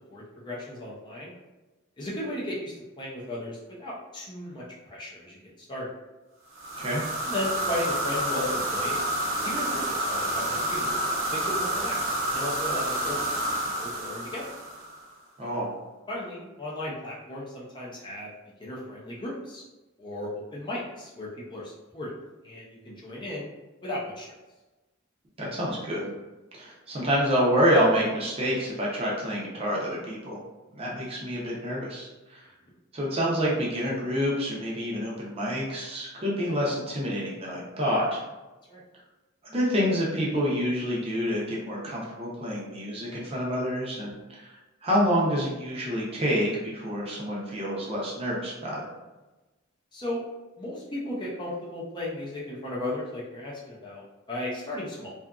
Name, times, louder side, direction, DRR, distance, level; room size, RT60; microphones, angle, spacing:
voice 1, 0.1-1.3 2.0-5.4 5.7-5.9 7.2-9.1 9.4-10.9 11.3-12.0 12.3-13.2 13.8-14.5 16.1-18.3 18.6-19.6 20.0-22.1 22.4-23.5 23.8-24.3 38.7-38.8 49.9-50.2 50.6-54.0 54.3-55.1, left 1 dB, 25° left, -5 dB, 0.5 m, -35 dB
sound 1, 6.5-15.1, right 1 dB, 85° right, 0.7 m, -29 dB
voice 2, 15.4-15.7 25.4-26.1 26.5-30.4 30.7-32.4 32.9-38.2 39.5-44.5 44.8-48.9, equal, 30° right, -5 dB, 0.6 m, -27 dB
2.7 x 2.4 x 2.3 m, 1.1 s
head